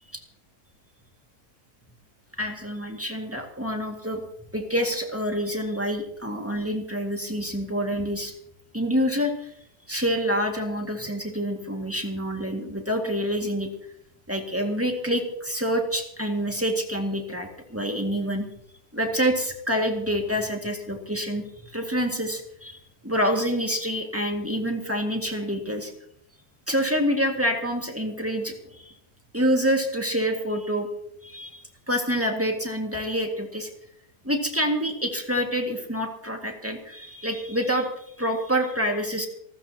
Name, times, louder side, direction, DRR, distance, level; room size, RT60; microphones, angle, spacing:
voice 1, 2.4-4.2 4.5-8.3 8.7-9.5 9.9-13.7 14.3-18.5 18.9-25.9 26.7-28.9 29.3-30.9 31.2-33.7 34.2-39.3, equal, 10° right, 2 dB, 2.0 m, -27 dB
27.0 x 13.5 x 2.9 m, 0.71 s
omnidirectional pair, 1.7 m